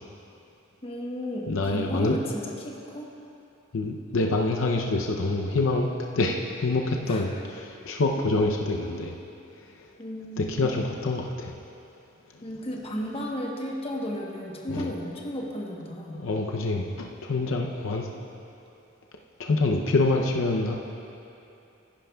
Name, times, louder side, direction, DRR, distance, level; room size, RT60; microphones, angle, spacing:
voice 1, 0.8-3.1 7.1-7.3 10.0-10.7 12.4-16.3, equal, 30° left, -1 dB, 1.0 m, -34 dB
voice 2, 1.5-2.2 3.7-5.9 6.2-9.1 10.4-11.5 14.7-14.9 16.1-18.1 19.4-20.8, left 2 dB, 75° left, 1 dB, 0.6 m, -26 dB
15.5 x 10.5 x 2.3 m, 2.8 s
head